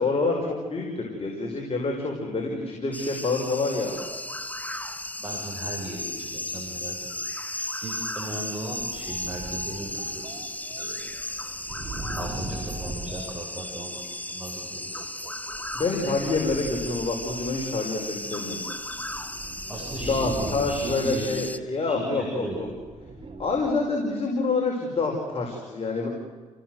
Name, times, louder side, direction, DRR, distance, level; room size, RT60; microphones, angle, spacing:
voice 1, 0.0-4.0 15.7-18.6 20.0-22.7 23.4-26.1, left 3 dB, 45° left, 0 dB, 5.4 m, -27 dB
sound 1, 2.9-21.6, left 1 dB, 10° left, 1.5 m, -35 dB
voice 2, 5.2-7.0 7.8-10.4 10.8-11.0 12.2-14.0 14.3-15.0 19.7-21.3 21.9-22.6, right 1 dB, 10° right, -3 dB, 7.2 m, -37 dB
sound 2, 8.8-14.1 14.9-23.8, right 2 dB, 40° right, 4.2 m, -40 dB
29.0 x 18.0 x 8.0 m, 1.4 s
cardioid pair, 75°, 14 cm